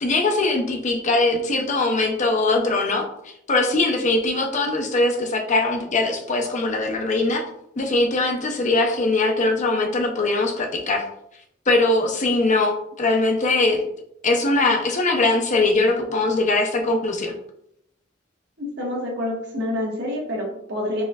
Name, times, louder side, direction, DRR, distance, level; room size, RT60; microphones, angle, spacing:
voice 1, 0.0-7.4 7.8-11.1 11.7-13.8 14.2-17.3, left 2 dB, 40° left, 3 dB, 0.6 m, -21 dB
voice 2, 18.6-21.0, left 1 dB, 65° right, -1 dB, 1.2 m, -27 dB
4.1 x 3.7 x 2.3 m, 0.74 s
head